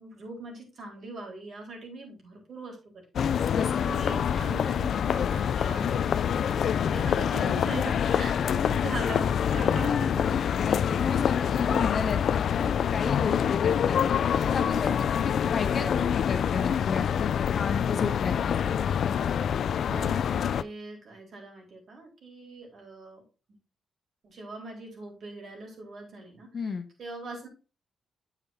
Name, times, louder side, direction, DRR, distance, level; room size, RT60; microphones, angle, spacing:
voice 1, 0.0-2.8 3.8-10.6 19.9-23.2 24.2-26.7 27.0-27.5, right 3 dB, 60° right, 0 dB, 3.9 m, -41 dB
sound 1, 3.2-20.6, left 8 dB, 65° left, 0.3 m, -26 dB
voice 2, 10.6-12.2 12.6-14.0 14.5-19.0 26.5-26.9, left 5 dB, 45° left, 7 dB, 1.2 m, -33 dB
8.8 x 7.3 x 2.7 m, 0.34 s
cardioid pair, 105°, 0 cm